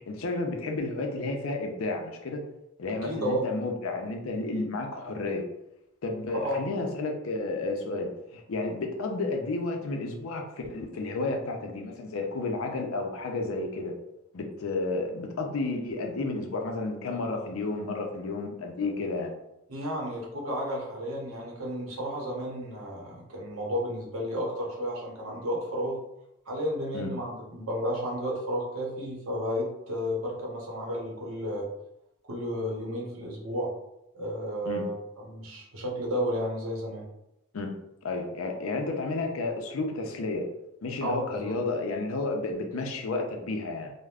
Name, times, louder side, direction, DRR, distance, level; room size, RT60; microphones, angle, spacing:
voice 1, 0.1-2.4 2.8-5.4 6.0-13.9 14.3-19.3 26.9-27.1 34.7-34.9 37.5-37.7 38.0-40.5 40.8-43.9, left 3 dB, 70° left, 3 dB, 0.5 m, -31 dB
voice 2, 2.9-3.4 6.3-6.7 19.7-26.0 26.5-31.7 32.3-33.7 34.1-37.1 41.0-41.1 41.4-41.5, equal, 70° right, -2 dB, 0.8 m, -32 dB
3.3 x 2.1 x 2.3 m, 0.86 s
head